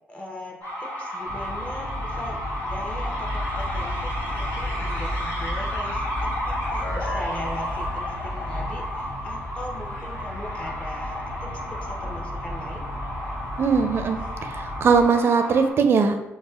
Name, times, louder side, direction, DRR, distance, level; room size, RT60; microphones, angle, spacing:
voice 1, 0.1-11.5 11.8-12.8, left 1 dB, 25° left, 0 dB, 0.8 m, -39 dB
sound 1, 0.6-15.7, left 1 dB, 70° left, 1.4 m, -32 dB
sound 2, 1.3-15.0, equal, 90° left, 0.7 m, -34 dB
voice 2, 13.6-16.3, right 5 dB, 50° right, 7 dB, 0.4 m, -20 dB
5.1 x 2.1 x 2.4 m, 0.93 s
cardioid pair, 75°, 5 cm